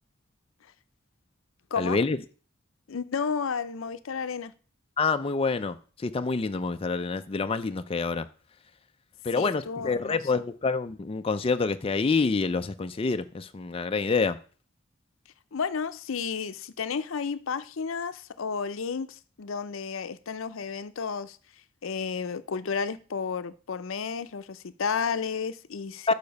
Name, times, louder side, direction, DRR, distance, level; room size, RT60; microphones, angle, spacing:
voice 1, 1.8-2.2 5.0-8.3 9.2-14.4 26.1-26.2, left 4 dB, 25° left, 0.4 m, -27 dB
voice 2, 2.9-4.5 9.3-10.2 15.5-21.4 21.8-26.1, left 6 dB, 70° left, 0.6 m, -32 dB
6.8 x 5.7 x 5.3 m
head